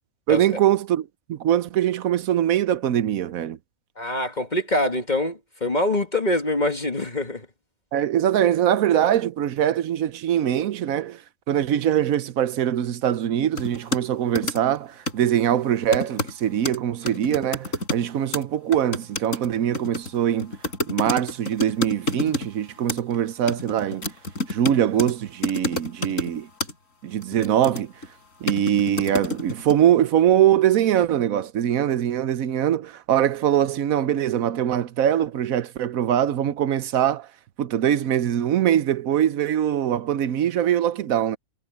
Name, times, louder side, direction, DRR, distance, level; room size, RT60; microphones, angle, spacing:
voice 1, 0.3-3.6 7.9-11.2 11.5-20.5 20.9-24.1 24.5-26.5 27.0-27.9 28.4-37.3 37.6-41.4, right 10 dB, 75° right, 1.2 m, -22 dB
voice 2, 4.0-7.5, left 1 dB, 30° left, 2.1 m, -24 dB
sound 1, 13.6-14.0 14.3-14.8 15.1-15.3 15.9-16.3 16.6-16.8 17.0-18.1 18.3-18.4 18.7-22.5 22.9-23.2 23.5-25.1 25.4-26.3 26.6-26.7 27.2-28.1 28.5-29.7, left 1 dB, 65° left, 5.2 m, -28 dB
omnidirectional pair, 1.5 m